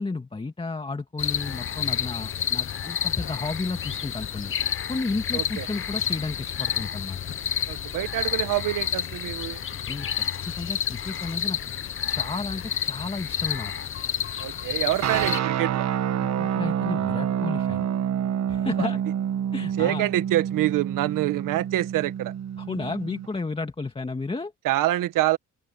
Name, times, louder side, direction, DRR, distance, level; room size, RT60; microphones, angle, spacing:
voice 1, 0.0-4.5 4.9-7.2 9.9-11.6 12.1-13.7 16.2-17.9 18.5-19.0 19.5-20.1 22.6-24.5, left 3 dB, 15° left, 2.0 m, -32 dB
sound 1, 1.2-15.4, left 8 dB, 40° left, 0.9 m, -30 dB
voice 2, 5.3-5.7 7.7-9.6 14.4-15.9 18.8-18.9 19.8-22.3 24.6-25.4, right 15 dB, 80° right, 1.2 m, -26 dB
sound 2, 15.0-23.3, right 9 dB, 55° right, 1.3 m, -27 dB
open air
cardioid pair, 105°, 32 cm